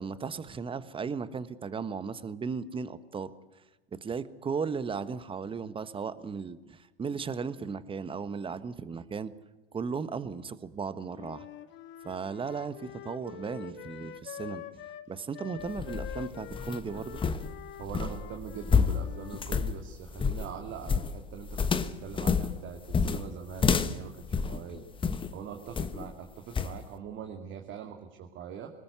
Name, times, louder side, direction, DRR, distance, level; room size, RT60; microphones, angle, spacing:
voice 1, 0.0-3.3 3.9-9.3 9.7-11.5 12.0-14.8 15.1-17.2, right 5 dB, 15° right, 15 dB, 1.3 m, -36 dB
Wind instrument woodwind instrument, 11.1-19.5, left 10 dB, 40° left, 1.7 m, -45 dB
sound 1, 15.6-25.3 25.7-26.1 26.5-26.8, left 5 dB, 15° left, 1.3 m, -29 dB
voice 2, 17.8-21.7 22.0-24.8 25.3-28.7, right 7 dB, 40° right, 4 dB, 2.4 m, -42 dB
23.0 x 20.0 x 8.2 m, 1.2 s
hypercardioid pair, 105°, 30 cm